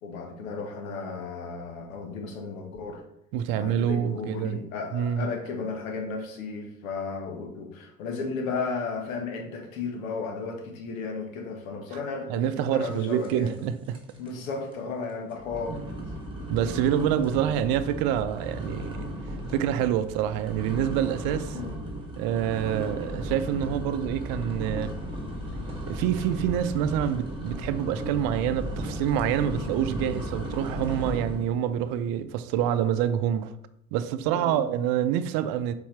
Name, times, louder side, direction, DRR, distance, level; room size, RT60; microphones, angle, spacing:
voice 1, 0.0-3.0 3.5-13.5 14.2-15.8 21.5-21.8 22.8-22.9 34.3-34.6, left 4 dB, 75° left, 1.4 m, -34 dB
voice 2, 3.3-4.6 4.9-5.3 12.3-14.0 15.7-15.8 16.5-19.1 19.5-21.6 22.2-24.9 25.9-33.5 33.9-35.7, right 10 dB, 60° right, 0.6 m, -27 dB
sound 1, 13.2-13.6 13.9-14.3 14.7-14.8 15.4-31.6, equal, 10° right, 1.9 m, -35 dB
sound 2, 25.0-30.3, left 2 dB, 15° left, 2.4 m, -42 dB
7.0 x 4.6 x 3.2 m
hypercardioid pair, 60°, 41 cm